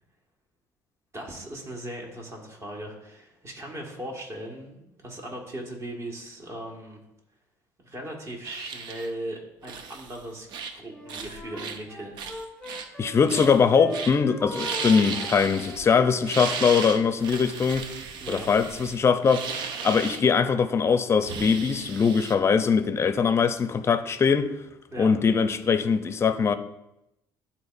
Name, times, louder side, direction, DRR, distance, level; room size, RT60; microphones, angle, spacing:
voice 1, 1.1-7.0 7.8-10.5 10.7-12.2 18.2-18.5 24.9-25.1, right 1 dB, 35° right, 0 dB, 1.8 m, -38 dB
sound 1, 8.4-9.1 9.6-10.2 10.5-10.8 11.1-11.8 12.2-12.9 13.3-13.6 13.9-14.1 14.5-15.9 16.2-20.2 21.2-22.3, right 6 dB, 65° right, 0.7 m, -35 dB
Wind instrument woodwind instrument, 10.9-13.5 13.7-16.5, left 1 dB, 5° left, 1.5 m, -39 dB
voice 2, 13.0-17.9 18.3-24.5 25.0-26.5, left 6 dB, 35° left, 10 dB, 0.6 m, -22 dB
11.5 x 4.3 x 2.6 m, 0.87 s
supercardioid pair, 85°, 8 cm